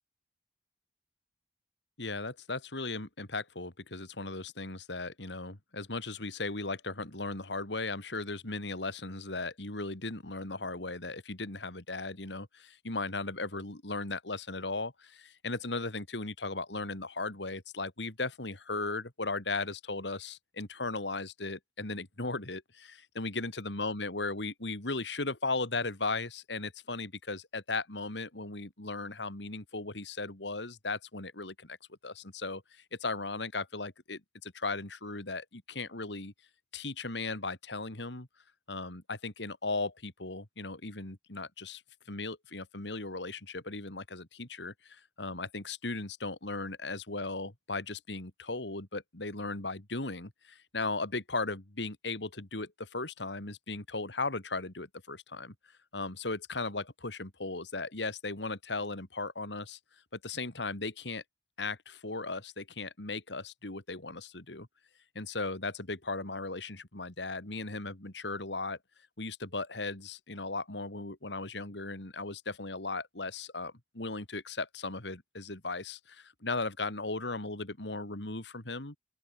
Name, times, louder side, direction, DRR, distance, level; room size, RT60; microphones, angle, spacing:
voice 1, 2.0-36.3 36.7-38.3 38.7-41.8 42.1-55.5 55.9-59.8 60.1-61.2 61.6-64.7 65.1-68.8 69.2-78.9, left 3 dB, 75° left, 2.9 m, -37 dB
open air
head